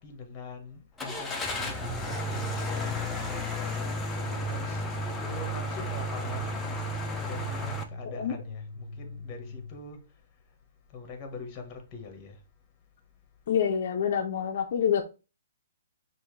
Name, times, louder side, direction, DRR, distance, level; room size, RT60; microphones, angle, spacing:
voice 1, 0.0-4.9 5.2-6.6 7.2-10.0 10.9-12.4, left 4 dB, 25° left, 1.2 m, -43 dB
Car / Engine starting, 1.0-7.8, left 1 dB, 10° left, 0.6 m, -33 dB
sound 1, 4.2-9.8, equal, 90° right, 1.0 m, -43 dB
voice 2, 13.5-15.0, left 8 dB, 50° left, 0.5 m, -26 dB
5.6 x 2.6 x 3.2 m
hypercardioid pair, 155°, 0 cm